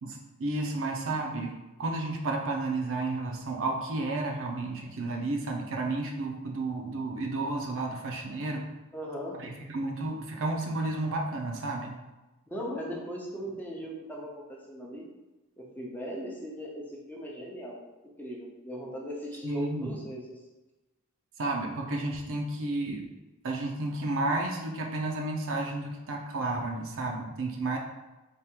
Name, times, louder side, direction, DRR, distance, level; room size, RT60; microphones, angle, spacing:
voice 1, 0.0-8.6 9.4-12.0 19.4-20.0 21.4-23.1 23.4-27.8, right 2 dB, 65° right, 1 dB, 0.6 m, -32 dB
voice 2, 8.9-9.4 12.5-15.1 15.6-17.8 18.2-20.2, equal, 10° left, -3 dB, 0.6 m, -38 dB
3.5 x 2.5 x 4.4 m, 1.1 s
head